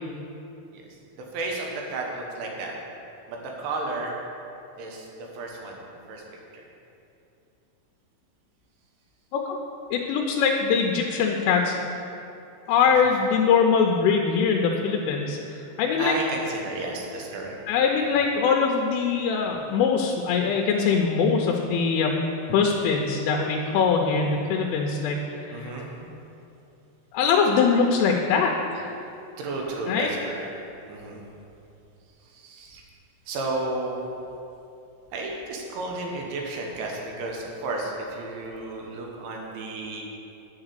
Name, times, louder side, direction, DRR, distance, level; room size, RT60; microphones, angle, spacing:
voice 1, 0.7-2.7 3.3-4.2 4.8-5.8 6.1-6.2 6.5-6.6 12.7-13.2 16.0-17.6 18.1-18.2 25.5-25.9 29.4-30.5 30.9-31.2 32.2-32.8 33.3-34.1 35.1-40.0, right 2 dB, 75° right, -1 dB, 3.6 m, -33 dB
voice 2, 9.9-11.8 12.7-16.1 17.7-22.2 22.5-25.7 27.1-28.9 29.9-30.1, left 5 dB, 85° left, 1 dB, 3.2 m, -22 dB
10.0 x 4.8 x 8.1 m, 2.7 s
omnidirectional pair, 5.5 m